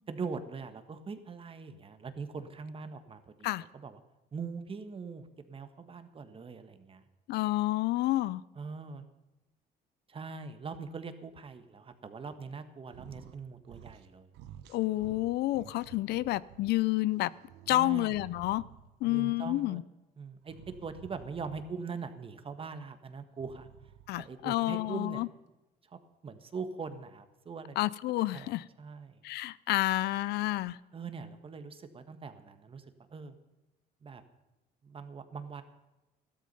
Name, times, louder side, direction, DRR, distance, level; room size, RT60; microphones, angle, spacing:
voice 1, 0.1-3.5 3.7-4.0 4.3-7.0 8.5-9.0 10.1-14.3 17.7-18.1 19.1-19.8 20.2-23.7 24.2-25.2 25.9-27.8 28.3-29.2 30.9-32.8 33.1-33.4 34.0-34.2 34.8-35.6, right 5 dB, 35° right, 9 dB, 1.6 m, -42 dB
voice 2, 7.3-8.4 14.7-17.3 17.7-18.6 19.0-19.8 24.1-25.3 27.8-28.6 29.2-30.8, left 17 dB, 75° left, 20 dB, 0.5 m, -29 dB
sound 1, 12.9-13.4 13.6-14.1 14.3-16.7 17.2-19.1 20.4-21.9 23.3-24.3, right 10 dB, 90° right, 1.1 m, -52 dB
14.0 x 12.5 x 5.5 m, 1.0 s
cardioid pair, 110°, 17 cm